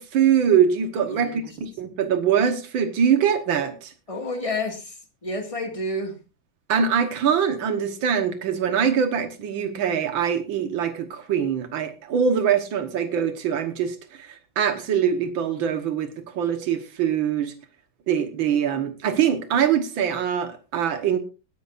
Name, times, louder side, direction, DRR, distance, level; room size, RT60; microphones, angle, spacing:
voice 1, 0.0-3.9 6.7-16.1 16.3-17.5 18.1-21.2, right 8 dB, 90° right, 8 dB, 2.1 m, -23 dB
voice 2, 4.1-6.2, left 1 dB, 15° left, 4 dB, 1.9 m, -30 dB
20.5 x 11.0 x 2.5 m, 0.30 s
omnidirectional pair, 2.1 m